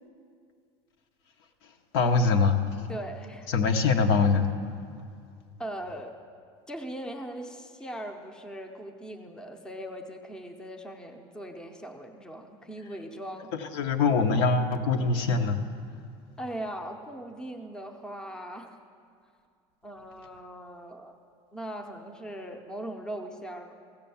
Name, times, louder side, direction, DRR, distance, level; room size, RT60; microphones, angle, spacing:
voice 1, 1.9-2.6 3.5-4.5 13.5-15.6, left 4 dB, 80° left, 6 dB, 0.9 m, -23 dB
voice 2, 2.9-3.5 5.6-6.1 6.7-13.5 16.4-18.8 19.8-21.2 21.5-23.7, right 1 dB, 5° left, 4 dB, 0.6 m, -39 dB
15.5 x 6.9 x 7.0 m, 2.3 s
cardioid pair, 165°, 13 cm